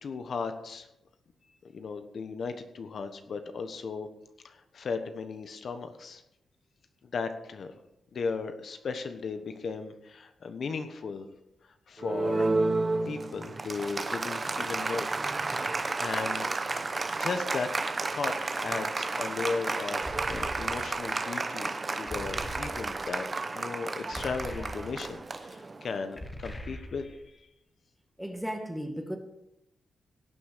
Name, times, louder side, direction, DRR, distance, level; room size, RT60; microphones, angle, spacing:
voice 1, 0.0-0.9 1.7-4.1 4.4-6.2 7.0-7.7 8.1-11.3 11.9-15.1 15.4-16.5 17.2-17.7 18.1-23.2 23.5-27.5, left 4 dB, 50° left, 8 dB, 1.2 m, -36 dB
Applause, 12.0-26.1, right 3 dB, 25° right, 0.9 m, -32 dB
sound 1, 20.0-21.1 22.1-23.1 24.1-25.2 26.2-27.2, equal, 15° left, 1.4 m, -42 dB
voice 2, 28.2-29.2, equal, 5° right, 5 dB, 1.7 m, -35 dB
17.5 x 6.2 x 6.7 m, 0.86 s
wide cardioid pair, 125°, 0 cm